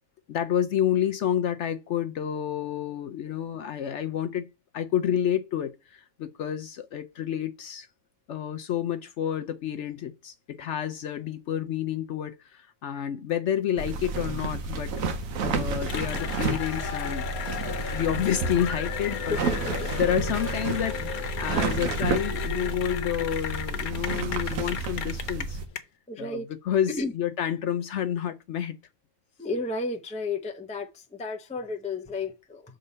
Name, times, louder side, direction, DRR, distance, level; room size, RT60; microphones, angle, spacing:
voice 1, 0.3-4.5 4.7-7.9 8.3-14.9 15.4-17.3 17.6-19.4 19.9-21.0 21.3-25.6 26.2-28.8, left 9 dB, 65° left, 0.8 m, -29 dB
sound 1, 13.8-25.7, right 4 dB, 70° right, 1.3 m, -31 dB
Cheering / Applause, 15.8-25.8, left 8 dB, 90° left, 1.3 m, -34 dB
voice 2, 26.1-26.5 27.0-27.1 29.4-32.6, left 3 dB, 10° left, 0.4 m, -32 dB
6.6 x 3.8 x 5.4 m
omnidirectional pair, 1.5 m